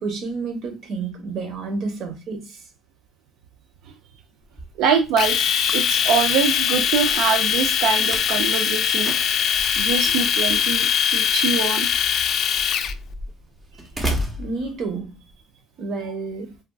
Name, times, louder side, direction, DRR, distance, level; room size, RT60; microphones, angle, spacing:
voice 1, 0.0-2.6 14.1-15.2 15.8-16.5, right 4 dB, 60° right, 1.0 m, -30 dB
Slam, 4.4-15.3, equal, 20° right, 0.7 m, -36 dB
voice 2, 4.8-9.1 9.8-11.9 14.0-14.1, right 6 dB, 85° right, 0.4 m, -24 dB
Domestic sounds home sounds, 5.2-12.9, left 8 dB, 55° left, 0.3 m, -21 dB
3.4 x 2.3 x 2.3 m
cardioid pair, 110°, 0 cm